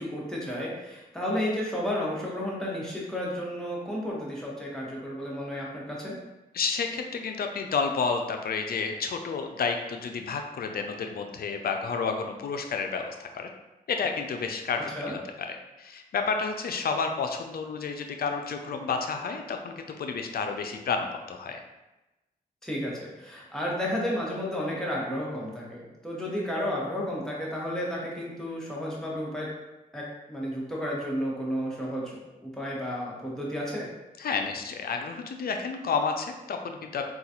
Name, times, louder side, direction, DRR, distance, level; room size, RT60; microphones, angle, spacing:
voice 1, 0.0-6.2 15.0-15.1 22.6-29.5 29.9-30.0 30.3-33.9, equal, 5° left, -5 dB, 1.2 m, -32 dB
voice 2, 6.5-13.5 13.9-15.2 15.5-21.6 34.2-37.1, left 5 dB, 65° left, 5 dB, 0.4 m, -30 dB
3.8 x 2.3 x 2.9 m, 1.0 s
cardioid pair, 60°, 17 cm